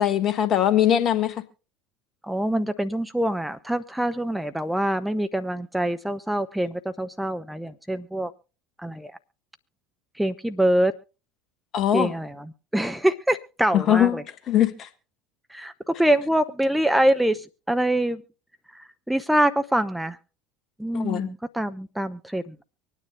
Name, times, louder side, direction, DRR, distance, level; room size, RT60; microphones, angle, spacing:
voice 1, 0.0-1.3 11.7-12.1 13.7-14.2 14.5-14.9 20.9-21.3, left 10 dB, 40° left, 1.2 m, -21 dB
voice 2, 2.2-8.3 8.8-9.1 10.2-10.9 11.9-14.2 15.5-18.2 18.7-20.2 20.8-22.6, right 1 dB, 5° right, 0.7 m, -25 dB
25.0 x 9.7 x 2.2 m
figure-of-eight pair, 70°, 0 cm